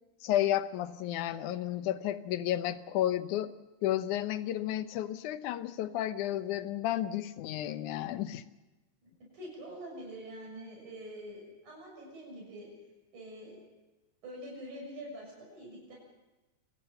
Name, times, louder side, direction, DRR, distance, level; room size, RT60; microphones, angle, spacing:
voice 1, 0.2-3.5 3.8-8.4, left 12 dB, 90° left, 12 dB, 2.4 m, -32 dB
voice 2, 9.0-12.7 13.1-13.6 14.2-15.9, equal, 85° right, -2 dB, 8.5 m, -45 dB
28.0 x 19.0 x 5.7 m, 1.1 s
omnidirectional pair, 3.4 m